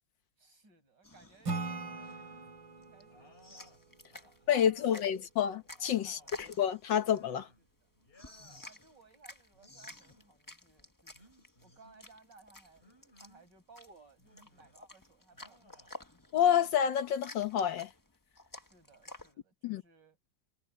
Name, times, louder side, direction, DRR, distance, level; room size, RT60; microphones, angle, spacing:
voice 1, 0.4-2.4 2.8-5.2 6.0-6.5 7.6-7.7 8.6-11.3 11.6-15.9 18.5-20.2, right 4 dB, 65° right, 8.1 m, -61 dB
sound 1, 1.0-19.3, left 2 dB, 10° left, 1.1 m, -53 dB
Acoustic guitar / Strum, 1.5-4.9, right 3 dB, 80° right, 3.3 m, -41 dB
sound 2, 1.8-2.6 3.1-5.1 5.5-6.4 7.0-7.7 8.0-8.7 9.5-10.3 11.1-12.0 12.8-13.5 14.2-14.8 15.3-15.9 16.3-17.4, equal, 30° left, 5.4 m, -62 dB
voice 2, 4.5-7.5 16.3-17.9 19.6-19.8, left 9 dB, 75° left, 1.8 m, -29 dB
omnidirectional pair, 2.1 m